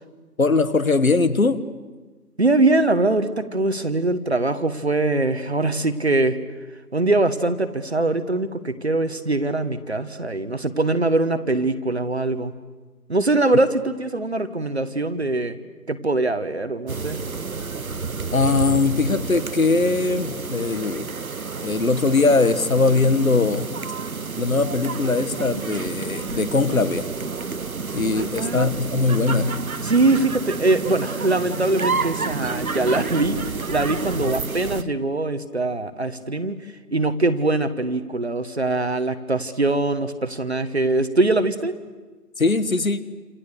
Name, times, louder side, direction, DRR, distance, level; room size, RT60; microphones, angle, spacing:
voice 1, 0.4-1.6 18.3-21.1 21.6-23.7 24.4-27.1 27.9-29.5 34.2-34.4 42.4-43.0, left 3 dB, 55° left, 15 dB, 1.5 m, -21 dB
voice 2, 2.4-6.4 6.9-12.5 13.1-15.6 15.9-17.2 28.2-28.7 29.8-33.4 33.7-36.6 36.9-41.8, right 2 dB, 40° right, 11 dB, 1.3 m, -22 dB
sound 1, 16.9-34.8, right 4 dB, 60° right, 0.9 m, -30 dB
29.5 x 27.5 x 6.7 m, 1.3 s
figure-of-eight pair, 165°, 49 cm